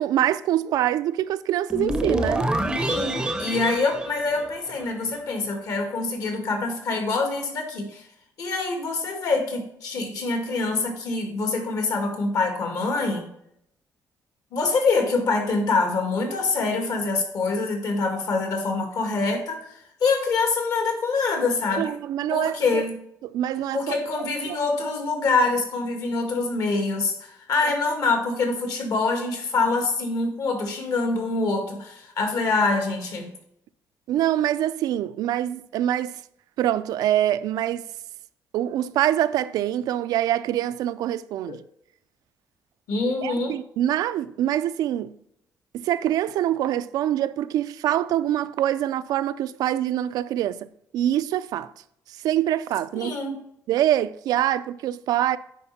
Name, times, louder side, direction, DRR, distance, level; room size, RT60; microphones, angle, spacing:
voice 1, 0.0-2.5 21.8-22.8 23.2-23.9 24.5-24.6 34.1-36.1 36.6-37.9 38.5-41.6 43.2-45.2 45.7-50.7 50.9-51.7 52.2-53.2 53.7-55.4, right 12 dB, 80° right, 0.4 m, -24 dB
sound 1, 1.7-5.0, right 1 dB, 10° right, 0.6 m, -27 dB
voice 2, 2.7-8.0 8.4-13.3 14.5-19.6 20.0-21.9 22.3-22.9 23.7-33.3 41.5-41.6 42.9-43.5 53.0-53.3, left 3 dB, 65° left, 2.2 m, -25 dB
9.9 x 4.4 x 4.2 m
cardioid pair, 135°, 7 cm